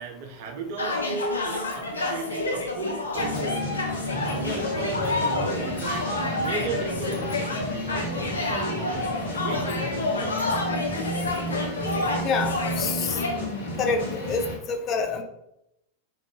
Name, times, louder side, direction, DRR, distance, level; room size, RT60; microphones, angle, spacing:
voice 1, 0.0-6.1 6.4-7.3 7.7-9.1 9.4-10.3, right 4 dB, 50° right, 4 dB, 0.6 m, -35 dB
sound 1, 0.8-13.4, left 2 dB, 70° left, 0.7 m, -29 dB
sound 2, 3.2-14.5, equal, 55° left, 1.6 m, -32 dB
voice 2, 12.2-13.2 13.8-15.2, left 5 dB, 30° left, 5 dB, 0.5 m, -27 dB
4.1 x 3.3 x 3.2 m, 0.82 s
figure-of-eight pair, 90°, 0 cm